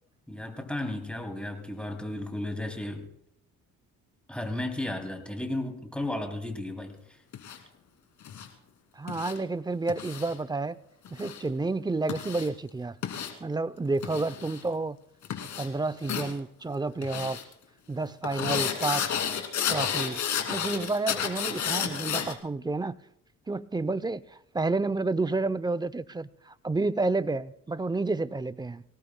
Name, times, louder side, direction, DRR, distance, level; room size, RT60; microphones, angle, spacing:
voice 1, 0.3-3.1 4.3-7.0, left 1 dB, 5° left, 2.9 m, -34 dB
sound 1, 7.3-7.6 8.2-8.5 9.1-9.4 9.9-10.3 11.0-11.4 12.1-12.5 13.0-13.3 14.0-14.6 15.2-15.7 16.0-16.3 17.0-17.4 18.2-22.3, left 8 dB, 70° left, 2.5 m, -31 dB
voice 2, 9.0-10.8 11.1-12.9 13.4-15.0 15.6-17.4 17.9-19.1 19.7-20.2 20.5-23.0 23.5-24.2 24.5-28.8, right 3 dB, 15° right, 0.5 m, -30 dB
25.0 x 18.0 x 2.2 m
cardioid pair, 90°, 30 cm